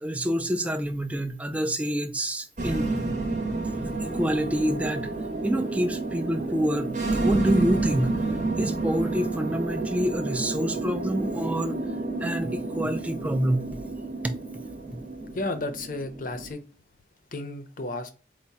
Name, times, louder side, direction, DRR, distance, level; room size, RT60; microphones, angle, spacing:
voice 1, 0.0-2.9 4.0-5.1 5.4-8.1 8.6-11.8 12.2-13.8, equal, 10° right, 0.3 m, -27 dB
sound 1, 2.6-16.5, right 2 dB, 45° right, 0.8 m, -30 dB
voice 2, 15.3-16.6 17.3-18.1, left 2 dB, 45° left, 0.6 m, -32 dB
4.5 x 2.1 x 4.0 m
head